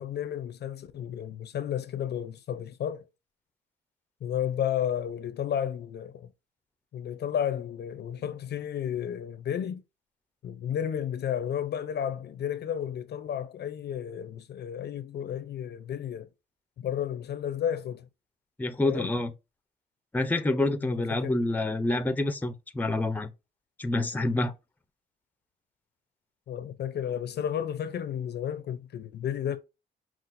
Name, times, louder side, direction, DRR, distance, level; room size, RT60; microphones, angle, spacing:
voice 1, 0.0-3.1 4.2-6.3 6.9-9.8 10.4-16.3 16.8-18.1 18.8-19.1 20.8-21.4 26.5-29.6, left 9 dB, 55° left, 0.5 m, -32 dB
voice 2, 18.6-19.3 20.1-23.3 23.8-24.5, left 2 dB, 10° left, 0.6 m, -27 dB
5.7 x 2.4 x 2.5 m
cardioid pair, 90°, 20 cm